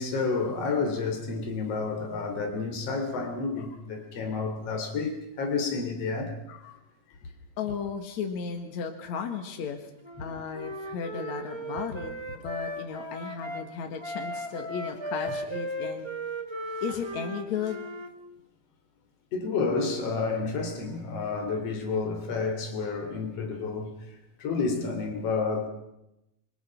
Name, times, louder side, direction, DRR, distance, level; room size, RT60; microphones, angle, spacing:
voice 1, 0.0-6.4 7.2-7.3 10.2-10.3 14.3-14.4 16.7-16.8 19.3-23.9 24.4-25.7, left 4 dB, 55° left, 3 dB, 4.2 m, -30 dB
voice 2, 6.5-6.8 7.6-9.9 10.2-12.1 12.4-16.1 16.8-17.8 24.7-25.0, left 6 dB, 70° left, 4 dB, 2.9 m, -35 dB
Wind instrument woodwind instrument, 10.0-13.6 14.0-18.1, equal, 15° right, 0.9 m, -36 dB
28.0 x 21.5 x 5.9 m, 0.85 s
omnidirectional pair, 3.4 m